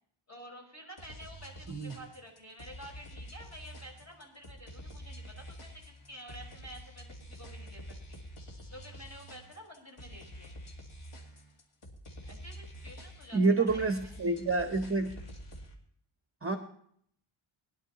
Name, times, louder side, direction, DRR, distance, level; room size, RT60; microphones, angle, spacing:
voice 1, 0.3-7.8 8.1-8.2 8.7-10.5 12.3-14.1, equal, 30° left, 0 dB, 4.6 m, -50 dB
sound 1, 1.0-15.7, equal, 85° left, 2.4 m, -48 dB
voice 2, 13.3-15.1 16.4-16.6, right 3 dB, 25° right, 6 dB, 0.8 m, -28 dB
20.5 x 11.0 x 2.8 m, 0.64 s
wide cardioid pair, 150°, 49 cm